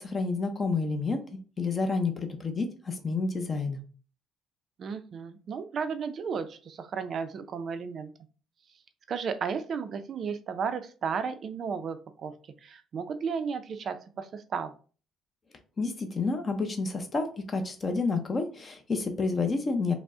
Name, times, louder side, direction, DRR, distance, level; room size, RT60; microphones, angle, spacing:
voice 1, 0.0-3.8 15.8-19.9, left 3 dB, 25° left, 6 dB, 0.5 m, -29 dB
voice 2, 4.8-8.1 9.1-12.3 12.6-14.7, right 6 dB, 45° right, 10 dB, 0.4 m, -34 dB
4.9 x 2.1 x 3.6 m, 0.38 s
cardioid pair, 155°, 0 cm